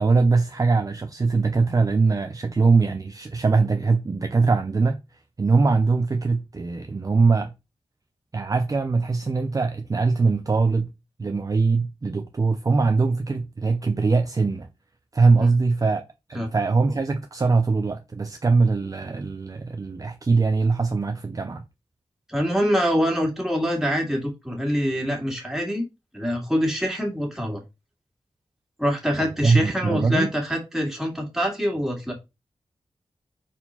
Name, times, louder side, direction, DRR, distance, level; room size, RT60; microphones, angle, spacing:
voice 1, 0.0-5.0 5.4-7.5 8.3-10.9 11.2-14.7 15.1-16.0 16.3-21.6 29.2-30.3, right 4 dB, 35° right, 0.6 m, -22 dB
voice 2, 22.3-25.8 26.1-27.6 28.8-32.1, equal, 5° right, 2.4 m, -25 dB
4.5 x 4.4 x 5.6 m
wide cardioid pair, 135°, 11 cm